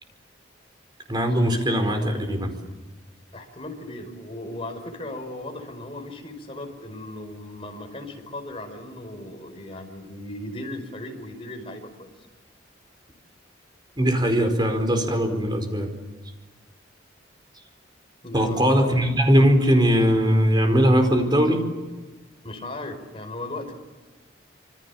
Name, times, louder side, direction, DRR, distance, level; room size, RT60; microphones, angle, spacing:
voice 1, 1.1-2.5 14.0-15.9 18.3-21.7, equal, 25° right, 5 dB, 4.6 m, -20 dB
voice 2, 3.3-12.1 18.2-18.9 22.4-23.7, left 1 dB, 30° left, 4 dB, 5.1 m, -36 dB
27.0 x 25.0 x 7.2 m, 1.3 s
head